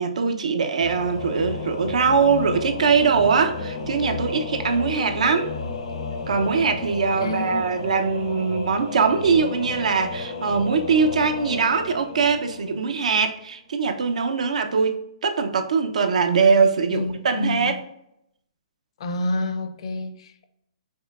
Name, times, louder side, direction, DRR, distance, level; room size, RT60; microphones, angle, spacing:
voice 1, 0.0-5.5 6.3-17.8, right 5 dB, 80° right, 0.6 m, -22 dB
Singing / Musical instrument, 0.8-13.3, left 3 dB, 80° left, 0.8 m, -33 dB
voice 2, 7.2-7.7 16.9-17.8 19.0-20.4, left 2 dB, 50° left, 0.5 m, -28 dB
5.4 x 3.1 x 2.4 m
hypercardioid pair, 160°, 4 cm